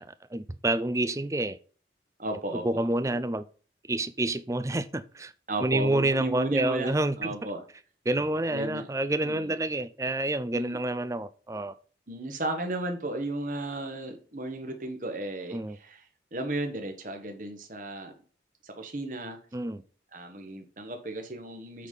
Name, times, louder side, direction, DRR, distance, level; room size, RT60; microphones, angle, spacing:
voice 1, 0.0-1.6 2.6-3.4 3.9-5.3 5.6-7.3 8.1-11.7 15.5-15.8 19.5-19.8, right 1 dB, 15° right, 0.4 m, -28 dB
voice 2, 2.2-2.8 5.5-7.6 8.5-8.9 9.2-9.6 10.5-10.8 12.1-16.0 16.3-18.1 18.6-19.4 20.1-21.9, right 2 dB, 45° right, 1.5 m, -34 dB
8.3 x 4.2 x 5.3 m
head